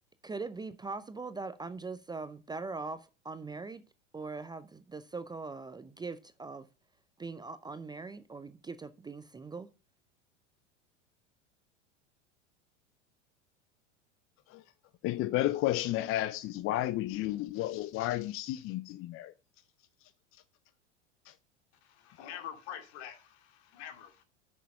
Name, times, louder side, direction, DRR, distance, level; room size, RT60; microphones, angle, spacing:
voice 1, 0.2-3.8 4.1-6.7 7.2-9.7, right 4 dB, 10° right, 0.5 m, -41 dB
voice 2, 15.0-19.3, left 15 dB, 35° left, 0.6 m, -32 dB
voice 3, 21.8-24.2, left 9 dB, 65° left, 2.5 m, -46 dB
9.2 x 6.5 x 5.4 m
hypercardioid pair, 90°, 36 cm